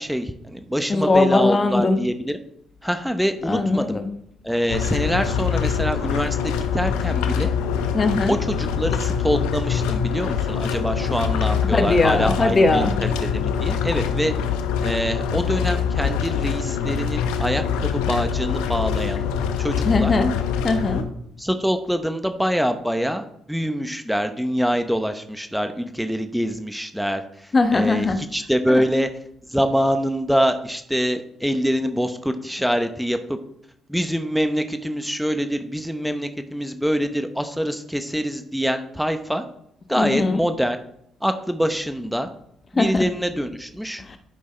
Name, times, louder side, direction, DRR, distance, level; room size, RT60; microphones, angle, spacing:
voice 1, 0.0-2.3 2.8-4.0 4.4-7.5 8.3-14.3 14.8-19.2 19.6-20.1 21.4-29.1 29.5-33.4 33.9-39.4 39.9-40.8 41.2-42.3 42.7-44.0, equal, ahead, 8 dB, 0.8 m, -25 dB
voice 2, 0.9-2.0 3.5-4.1 7.9-8.4 11.7-12.9 19.8-20.3 20.6-21.1 27.5-28.2 28.7-28.9 40.0-40.4 42.8-43.1 44.0-44.2, left 3 dB, 35° left, 8 dB, 1.1 m, -20 dB
sound 1, 4.7-21.0, left 7 dB, 85° left, 0.7 m, -24 dB
12.0 x 5.4 x 3.3 m, 0.72 s
supercardioid pair, 60°, 0 cm